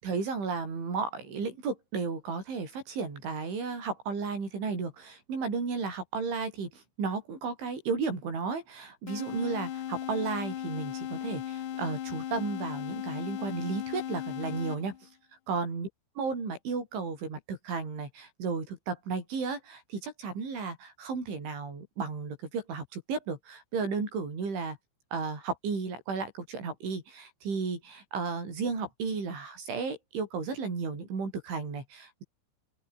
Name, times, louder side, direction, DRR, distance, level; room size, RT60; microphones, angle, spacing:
voice 1, 0.0-15.1 15.5-15.9 16.2-24.8 25.1-32.2, right 4 dB, 80° right, 10.5 m, -34 dB
sound 1, 9.1-15.1, left 11 dB, 60° left, 2.5 m, -37 dB
open air
omnidirectional pair, 5.3 m